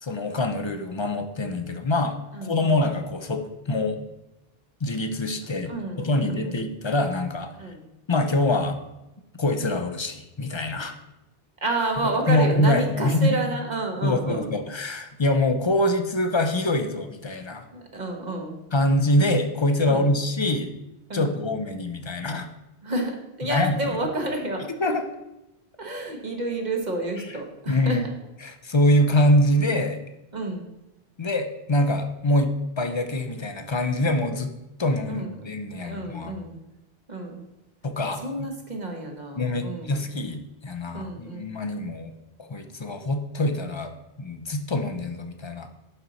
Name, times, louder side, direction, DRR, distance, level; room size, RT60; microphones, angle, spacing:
voice 1, 0.0-4.0 4.8-5.7 6.0-7.5 8.1-8.8 9.3-10.9 12.0-13.4 14.0-17.7 18.7-20.7 21.1-22.5 23.4-24.1 24.8-25.1 27.2-27.4 27.7-28.0 28.4-30.0 31.2-34.5 34.8-36.4 37.8-38.5 39.4-42.1 42.4-45.7, left 1 dB, 35° left, 6 dB, 0.5 m, -24 dB
voice 2, 2.3-2.7 5.7-6.5 7.6-7.8 11.6-14.5 17.7-18.6 19.9-20.1 21.1-21.4 22.8-24.7 25.8-28.0 30.3-30.6 35.1-35.3 35.8-36.6 37.1-37.4 38.2-40.0 40.9-41.5, right 2 dB, 45° right, 2 dB, 1.3 m, -30 dB
11.0 x 4.4 x 4.0 m, 0.95 s
omnidirectional pair, 1.1 m